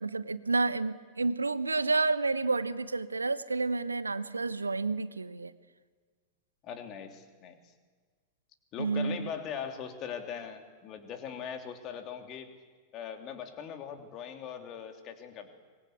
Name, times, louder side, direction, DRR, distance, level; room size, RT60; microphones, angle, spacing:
voice 1, 0.0-5.5 8.8-9.3, right 3 dB, 80° right, 15 dB, 1.0 m, -30 dB
voice 2, 6.6-7.7 8.7-12.5 12.9-15.5, left 7 dB, 35° left, 5 dB, 3.2 m, -40 dB
25.0 x 21.5 x 8.3 m, 1.5 s
figure-of-eight pair, 90°, 0 cm